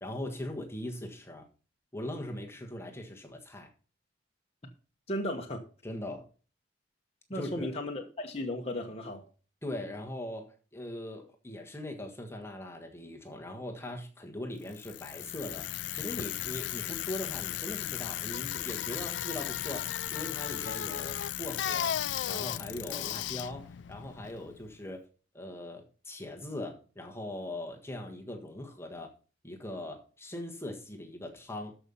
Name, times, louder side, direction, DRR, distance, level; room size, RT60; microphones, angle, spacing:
voice 1, 0.0-1.5 1.9-3.7 5.8-6.3 7.3-7.7 9.6-22.0 22.3-25.0 25.3-29.1 29.4-31.7, left 1 dB, 15° left, 1.4 m, -40 dB
voice 2, 5.1-5.6 7.3-9.2, left 1 dB, 30° left, 1.2 m, -35 dB
Bicycle, 14.7-24.7, left 11 dB, 65° left, 0.4 m, -35 dB
13.0 x 5.5 x 5.5 m
head